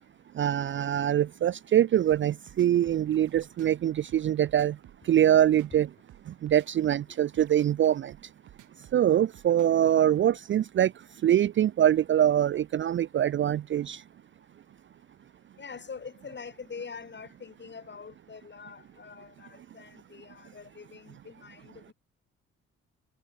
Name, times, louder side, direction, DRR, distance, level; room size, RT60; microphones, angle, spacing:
voice 1, 0.4-4.8 5.0-5.9 6.3-8.1 8.9-10.9 11.2-14.0, right 11 dB, 40° right, 0.4 m, -24 dB
sound 1, 2.1-9.9, right 13 dB, 80° right, 4.6 m, -54 dB
voice 2, 15.6-21.9, left 5 dB, 35° left, 5.4 m, -44 dB
cardioid pair, 90°, 30 cm